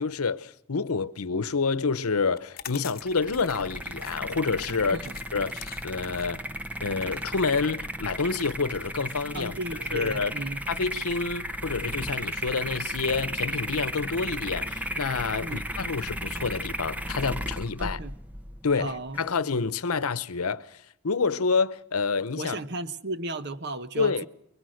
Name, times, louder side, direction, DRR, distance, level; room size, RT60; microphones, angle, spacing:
voice 1, 0.0-5.0 5.3-6.4 6.8-9.5 9.9-10.3 10.7-18.0 18.6-22.6 24.0-24.3, left 4 dB, 90° left, 0.9 m, -28 dB
sound 1, 2.3-8.0, left 10 dB, 40° left, 1.1 m, -46 dB
sound 2, 3.0-19.3, equal, 5° right, 0.8 m, -35 dB
voice 2, 4.9-5.2 9.3-10.6 15.4-15.6 17.8-18.2 18.8-19.2 22.3-24.3, right 2 dB, 50° right, 1.0 m, -35 dB
24.0 x 22.5 x 6.5 m
head